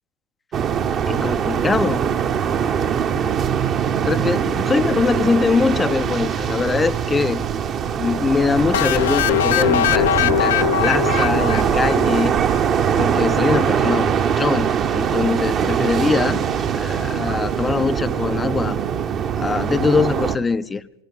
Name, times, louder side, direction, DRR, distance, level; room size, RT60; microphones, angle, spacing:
sound 1, 0.5-20.4, right 8 dB, 30° right, 1.0 m, -22 dB
voice 1, 1.1-2.0 4.0-7.4 7.9-12.4 13.0-16.4 16.7-18.8 19.4-20.8, left 4 dB, 15° left, 0.7 m, -22 dB
sound 2, 8.7-12.5, left 11 dB, 55° left, 0.7 m, -21 dB
19.5 x 17.0 x 8.1 m
figure-of-eight pair, 90°, 0 cm